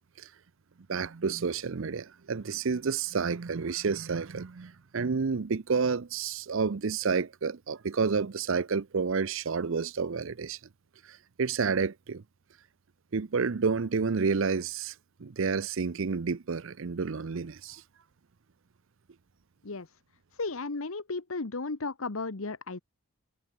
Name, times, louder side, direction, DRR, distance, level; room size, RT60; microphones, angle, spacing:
voice 1, 0.9-10.6 11.1-12.2 13.1-14.9 15.2-17.8, right 5 dB, 60° right, 0.6 m, -30 dB
voice 2, 20.3-22.8, left 3 dB, 70° left, 1.1 m, -34 dB
head